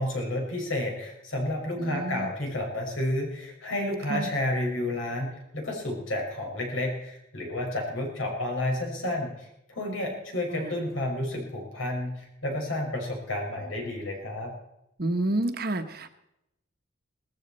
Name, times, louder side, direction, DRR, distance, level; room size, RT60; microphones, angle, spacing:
voice 1, 0.0-14.5, left 1 dB, 80° left, 0 dB, 6.0 m, -31 dB
voice 2, 1.8-2.3 4.1-4.3 10.5-10.8 15.0-16.1, right 1 dB, 50° right, 8 dB, 1.2 m, -29 dB
19.0 x 14.5 x 4.4 m, 0.84 s
head